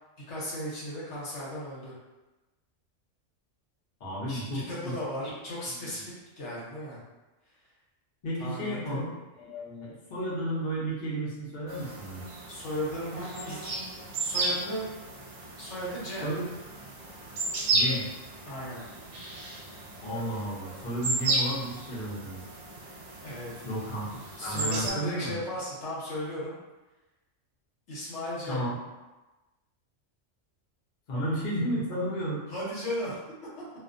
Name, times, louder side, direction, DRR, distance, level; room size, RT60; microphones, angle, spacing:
voice 1, 0.3-1.9 4.3-7.0 8.4-9.0 12.5-13.8 14.2-14.9 15.6-16.3 18.5-18.8 23.2-23.7 24.4-26.6 27.9-28.6 32.5-33.2, equal, 65° left, -7 dB, 1.0 m, -36 dB
voice 2, 4.0-4.9 5.8-5.9 8.2-9.1 9.4-12.3 16.2-16.5 17.7-18.0 20.0-22.4 23.6-25.4 28.5-28.7 31.1-32.4, right 1 dB, 50° left, -7 dB, 0.7 m, -33 dB
sound 1, 11.7-24.9, right 2 dB, 75° right, 0.9 m, -34 dB
2.4 x 2.1 x 2.4 m, 1.1 s
omnidirectional pair, 1.3 m